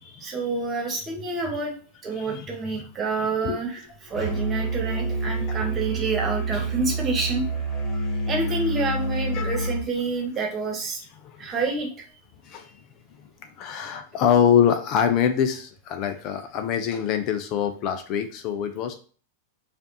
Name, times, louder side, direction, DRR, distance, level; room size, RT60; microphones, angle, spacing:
voice 1, 0.2-1.7 2.0-7.4 8.3-11.0 11.4-11.9, right 3 dB, 25° right, 1 dB, 1.3 m, -28 dB
voice 2, 2.2-2.9 3.2-3.6 5.5-5.6 9.3-9.7 11.2-11.3 12.4-12.7 13.6-18.9, left 8 dB, 45° left, 7 dB, 0.5 m, -25 dB
Musical instrument, 4.1-9.8, right 2 dB, 10° left, 1.7 m, -28 dB
5.0 x 2.5 x 2.9 m, 0.40 s
hypercardioid pair, 95°, 0 cm